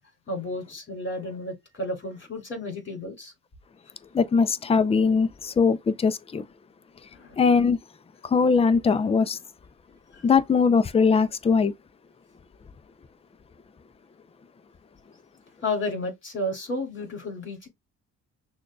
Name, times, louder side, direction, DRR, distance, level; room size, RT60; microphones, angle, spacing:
voice 1, 0.3-3.3 7.1-7.4 10.1-10.3 15.6-17.7, left 1 dB, 40° left, 2.9 m, -32 dB
voice 2, 4.1-6.4 7.4-7.8 8.2-9.4 10.2-11.7, left 5 dB, 20° left, 0.4 m, -21 dB
6.2 x 2.4 x 2.3 m
cardioid pair, 90°, 30 cm